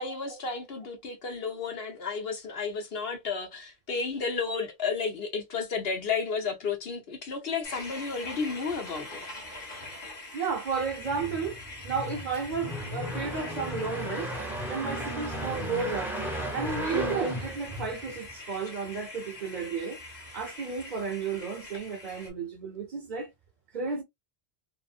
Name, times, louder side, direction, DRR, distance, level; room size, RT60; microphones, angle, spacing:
voice 1, 0.0-9.2 16.9-17.2, left 5 dB, 70° left, 1.1 m, -32 dB
sound 1, 7.6-22.3, left 2 dB, 45° left, 1.1 m, -44 dB
voice 2, 10.3-11.6 11.8-14.3 14.7-16.1 16.5-20.0 20.3-23.3 23.7-24.0, right 5 dB, 50° right, 0.8 m, -33 dB
sound 2, 10.8-18.4, equal, ahead, 0.7 m, -35 dB
2.8 x 2.5 x 2.4 m
omnidirectional pair, 1.1 m